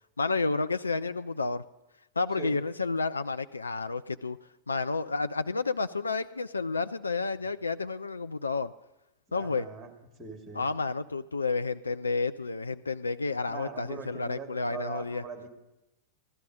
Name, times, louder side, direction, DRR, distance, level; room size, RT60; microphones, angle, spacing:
voice 1, 0.2-1.6 2.2-4.4 4.7-8.7 9.3-9.7 10.5-15.2, left 3 dB, 80° left, 10 dB, 0.4 m, -30 dB
voice 2, 9.3-9.9 10.2-10.7 13.4-15.5, right 5 dB, 15° right, 2 dB, 2.4 m, -41 dB
15.5 x 12.0 x 5.1 m, 0.93 s
figure-of-eight pair, 90°, 0 cm